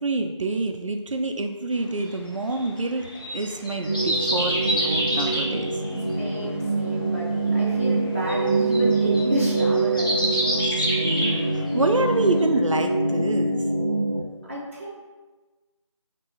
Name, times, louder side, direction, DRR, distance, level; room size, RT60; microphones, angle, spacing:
voice 1, 0.0-3.1 3.3-5.8 10.7-13.6, right 2 dB, 75° right, 4 dB, 0.4 m, -27 dB
sound 1, 2.0-12.0 12.4-12.5, equal, 45° left, 1.1 m, -28 dB
sound 2, 3.8-14.2, right 2 dB, 20° left, 1.0 m, -24 dB
voice 2, 6.2-10.7 11.2-11.5 14.5-14.9, right 1 dB, 25° right, -5 dB, 0.6 m, -32 dB
4.4 x 3.0 x 2.8 m, 1.3 s
figure-of-eight pair, 170°, 16 cm